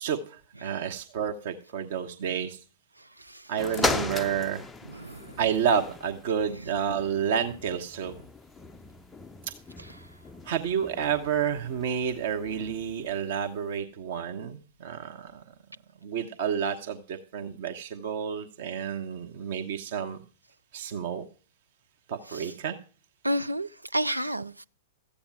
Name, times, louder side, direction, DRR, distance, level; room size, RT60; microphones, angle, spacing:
voice 1, 0.0-2.6 3.5-4.6 5.4-8.1 10.4-15.4 16.0-20.2 20.7-21.2 22.1-22.8, right 8 dB, 55° right, 1.1 m, -30 dB
voice 2, 3.0-3.5 3.8-4.0 4.9-5.4 6.6-6.8 9.8-10.1 22.3-22.5 23.2-24.6, equal, 90° right, 0.4 m, -33 dB
sound 1, 3.6-13.1 13.8-13.9, left 3 dB, 10° left, 0.5 m, -37 dB
13.5 x 8.7 x 4.7 m
figure-of-eight pair, 100°, 0 cm